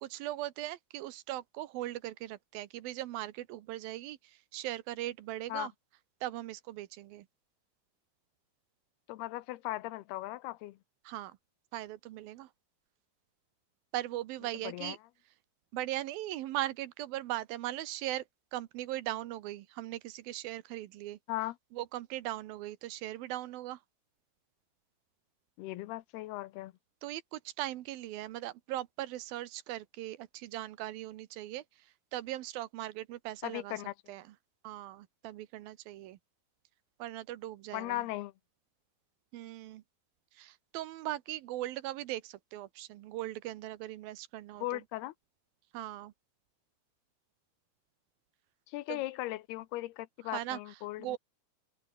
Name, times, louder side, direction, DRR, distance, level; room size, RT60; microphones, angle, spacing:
voice 1, 0.0-5.7 6.2-7.3 11.0-11.4 11.7-12.5 13.9-15.0 15.7-18.2 18.5-21.2 21.7-23.8 27.0-31.6 32.1-33.8 34.1-34.3 34.6-36.2 37.0-38.1 39.3-39.8 40.3-44.8 45.7-46.1 48.9-49.0 50.3-51.2, right 15 dB, 75° right, 2.7 m, -39 dB
voice 2, 9.1-10.8 14.6-15.0 21.3-21.6 25.6-26.7 33.4-34.2 37.7-38.3 44.6-45.1 48.7-51.2, left 17 dB, 90° left, 2.9 m, -38 dB
omnidirectional pair, 4.4 m